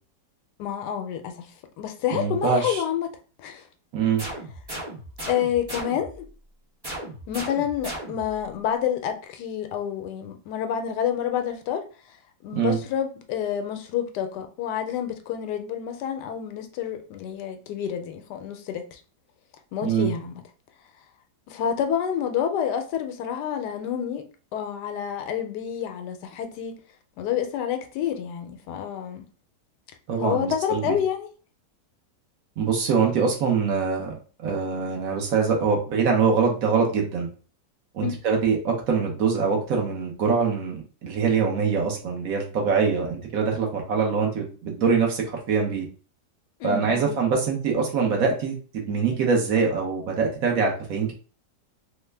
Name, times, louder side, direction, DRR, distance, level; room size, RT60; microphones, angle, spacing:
voice 1, 0.6-1.5 1.8-3.1 3.4-3.6 5.3-6.3 7.3-11.8 12.4-19.0 19.7-20.3 21.5-24.2 24.5-26.7 27.2-29.2 30.2-31.3 38.0-38.1 46.6-47.1, left 9 dB, 85° left, 1.2 m, -28 dB
voice 2, 2.1-2.8 3.9-4.2 12.5-12.8 19.8-20.1 30.1-30.8 32.6-34.1 34.4-37.3 37.9-45.9 46.6-51.1, right 5 dB, 65° right, 1.1 m, -24 dB
sound 1, 4.2-6.2 6.8-8.4, right 1 dB, 20° right, 0.7 m, -36 dB
3.2 x 2.1 x 3.2 m
omnidirectional pair, 1.8 m